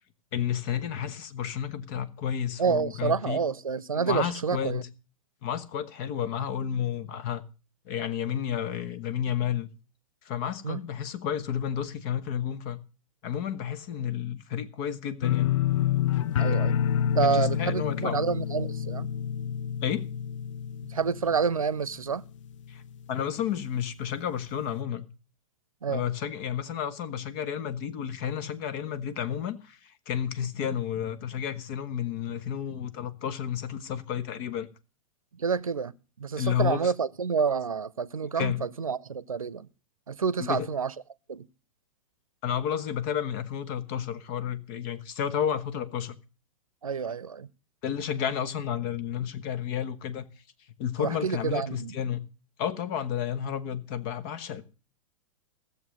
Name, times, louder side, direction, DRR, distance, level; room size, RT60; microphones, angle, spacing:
voice 1, 0.3-3.4 3.9-4.9 5.4-7.4 7.8-9.7 10.2-12.8 13.2-15.5 17.2-18.2 19.8-20.0 22.7-22.8 23.1-25.1 25.9-34.7 36.3-36.9 38.3-38.7 40.4-40.7 42.4-46.2 47.8-50.2 50.8-52.2 52.6-54.6, left 9 dB, 45° left, 1.3 m, -31 dB
voice 2, 2.6-4.8 10.6-10.8 16.4-16.8 17.1-19.1 20.9-22.2 25.8-26.0 35.4-35.9 36.2-39.7 40.1-40.9 41.3-41.5 46.8-47.5 51.0-52.0, right 6 dB, 85° right, 0.7 m, -28 dB
sound 1, 15.2-22.1 22.4-22.9 23.3-23.4, left 9 dB, 65° left, 0.5 m, -28 dB
16.0 x 7.1 x 6.3 m
figure-of-eight pair, 100°, 17 cm